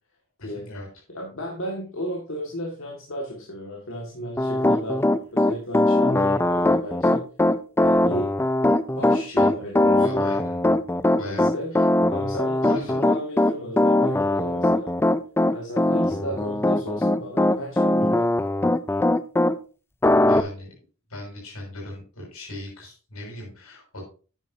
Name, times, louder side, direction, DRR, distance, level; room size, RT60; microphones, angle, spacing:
voice 1, 0.4-0.9 9.3-9.5 9.9-10.6 11.2-11.8 12.6-13.0 20.2-20.7 21.1-24.0, left 2 dB, 80° left, -1 dB, 6.0 m, -38 dB
voice 2, 1.1-7.2 7.8-8.3 9.0-10.3 11.2-11.8 12.1-14.9 15.5-18.3, equal, 65° left, -1 dB, 1.9 m, -34 dB
Piano, 4.4-19.5 20.0-20.4, left 1 dB, 10° left, 0.4 m, -20 dB
10.5 x 9.2 x 2.7 m, 0.37 s
head